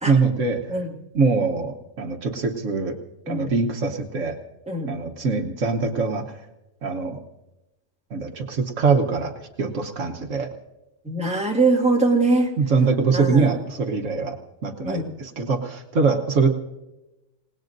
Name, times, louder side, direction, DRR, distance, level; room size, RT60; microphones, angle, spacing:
voice 1, 0.1-0.8 1.1-3.0 3.3-4.4 4.9-6.4 6.8-7.2 8.1-10.5 12.6-14.4 14.6-16.5, right 4 dB, 75° right, 3 dB, 1.4 m, -23 dB
voice 2, 11.0-12.5 13.1-13.5 14.8-15.1, right 3 dB, 5° right, -1 dB, 1.8 m, -22 dB
27.5 x 18.5 x 2.6 m, 0.99 s
omnidirectional pair, 1.3 m